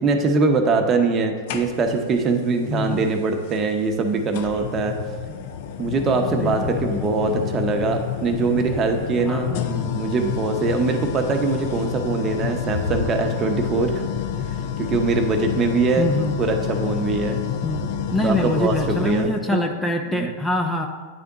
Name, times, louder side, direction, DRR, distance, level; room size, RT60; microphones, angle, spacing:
voice 1, 0.0-5.0 5.3-5.4 5.8-14.0 14.8-16.1 16.4-17.4 18.2-19.6 20.1-20.3, right 3 dB, 30° right, 4 dB, 0.8 m, -22 dB
sound 1, 1.5-2.1 3.5-3.6 4.3-19.4, left 8 dB, 60° left, 0.6 m, -29 dB
voice 2, 2.7-3.0 6.4-6.8 9.3-9.7 16.0-16.3 17.6-20.9, left 1 dB, 10° left, 3 dB, 0.5 m, -25 dB
9.2 x 3.5 x 3.9 m, 1.5 s
hypercardioid pair, 120°, 0 cm